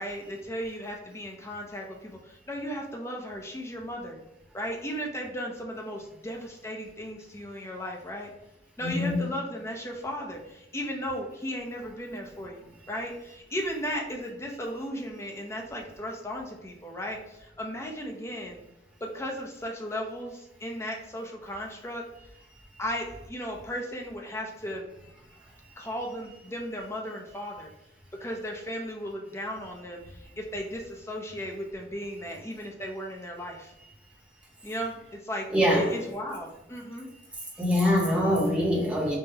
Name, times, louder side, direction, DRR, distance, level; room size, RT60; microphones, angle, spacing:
voice 1, 0.0-4.2 4.5-8.3 8.8-18.6 19.0-22.3 22.8-24.9 25.8-27.7 28.2-33.7 34.6-35.5 35.7-37.1, equal, 15° left, 0 dB, 0.5 m, -36 dB
voice 2, 8.8-9.3 35.5-36.0 37.6-39.2, equal, 5° right, -5 dB, 0.9 m, -24 dB
5.4 x 2.1 x 2.8 m, 0.91 s
head